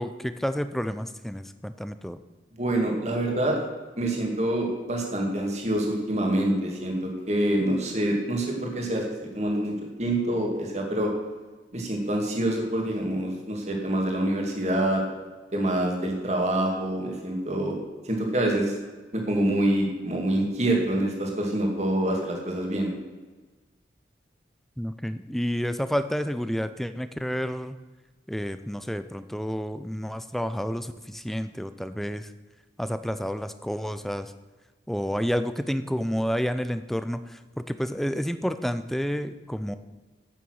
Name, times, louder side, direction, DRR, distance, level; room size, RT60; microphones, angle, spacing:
voice 1, 0.0-2.2 24.8-27.8 28.3-32.3 32.8-34.3 34.9-39.8, equal, ahead, 11 dB, 0.4 m, -30 dB
voice 2, 2.5-3.6 4.0-11.1 11.7-15.0 15.5-17.8 18.0-18.8 19.1-22.9, right 1 dB, 35° right, 1 dB, 2.3 m, -26 dB
9.3 x 8.8 x 6.4 m, 1.3 s
head